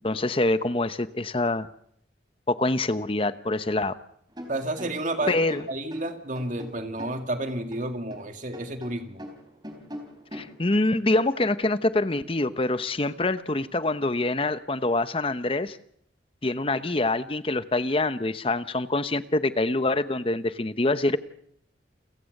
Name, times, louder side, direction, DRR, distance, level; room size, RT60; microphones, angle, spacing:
voice 1, 0.0-1.7 2.5-4.0 5.3-5.6 10.3-15.8 16.4-21.2, left 2 dB, 30° left, 13 dB, 0.9 m, -25 dB
sound 1, 4.3-8.3 8.5-10.6, equal, 25° right, 3.6 m, -42 dB
voice 2, 4.5-5.4 5.7-9.2, right 1 dB, 45° right, 6 dB, 2.3 m, -31 dB
29.0 x 15.5 x 6.6 m, 0.69 s
head